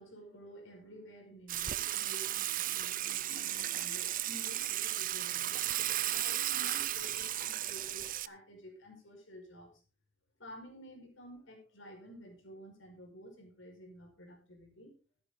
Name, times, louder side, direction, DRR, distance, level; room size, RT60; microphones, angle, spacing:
voice 1, 0.0-5.5 6.1-9.7 10.4-14.9, equal, 70° left, 2 dB, 5.2 m, -52 dB
Water / Water tap faucet / Sink (filling or washing), 1.5-8.3, right 13 dB, 45° right, 0.5 m, -34 dB
14.5 x 9.7 x 3.9 m, 0.36 s
head